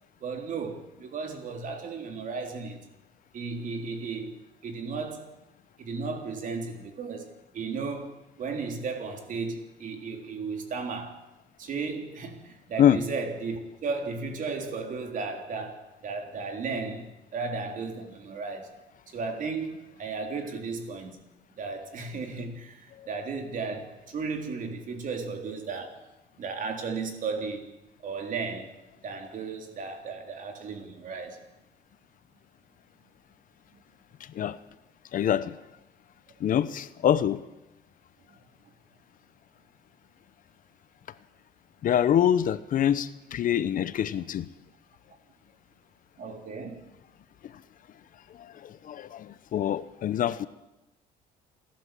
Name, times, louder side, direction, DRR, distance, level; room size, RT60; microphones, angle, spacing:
voice 1, 0.2-2.8 3.3-5.3 5.8-11.2 11.6-18.8 19.1-21.2 21.5-26.0 26.4-27.7 28.0-31.4 38.3-38.4 46.2-46.9, right 4 dB, 50° right, 3.5 m, -35 dB
voice 2, 35.1-35.6 36.4-37.4 41.8-44.5 48.6-50.5, left 10 dB, 55° left, 0.8 m, -25 dB
29.0 x 12.0 x 7.6 m
cardioid pair, 110°, 17 cm